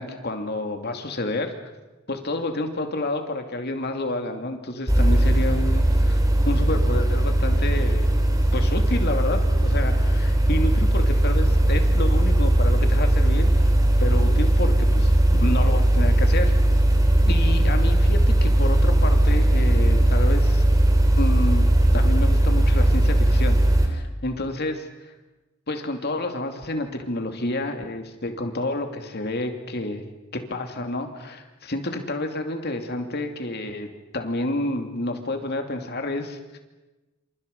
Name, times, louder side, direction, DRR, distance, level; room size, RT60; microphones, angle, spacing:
voice 1, 0.0-1.5 2.1-6.2 6.4-8.1 8.5-13.5 14.0-16.5 17.3-20.6 21.2-21.7 21.9-24.9 25.7-30.0 30.3-36.6, left 2 dB, 50° left, 5 dB, 2.8 m, -29 dB
sound 1, 4.9-23.9, right 1 dB, 15° right, 3.4 m, -19 dB
28.0 x 27.0 x 5.5 m, 1.1 s
head